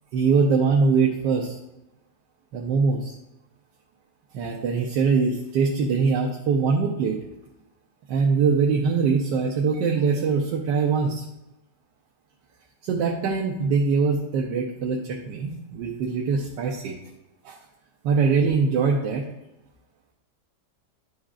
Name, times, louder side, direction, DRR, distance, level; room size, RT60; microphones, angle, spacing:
voice 1, 0.1-1.6 2.5-3.1 4.3-7.2 8.1-11.2 12.8-16.9 17.4-17.6 18.0-19.2, right 5 dB, 90° right, -1 dB, 1.4 m, -22 dB
11.0 x 5.0 x 2.4 m, 0.95 s
omnidirectional pair, 1.9 m